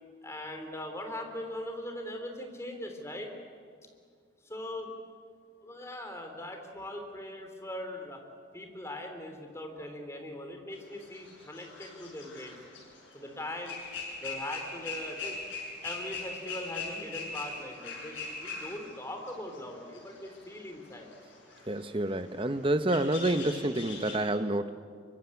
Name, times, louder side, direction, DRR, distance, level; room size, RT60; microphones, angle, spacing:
voice 1, 0.2-3.3 4.4-4.9 5.6-8.2 8.5-12.5 13.1-13.8 14.2-15.3 15.8-21.1, left 1 dB, 15° left, 4 dB, 3.2 m, -40 dB
sound 1, 11.0-13.3 13.6-24.2, left 4 dB, 75° left, 7.6 m, -41 dB
voice 2, 21.7-24.7, right 1 dB, 25° right, 10 dB, 1.0 m, -28 dB
25.0 x 24.0 x 8.5 m, 2.1 s
head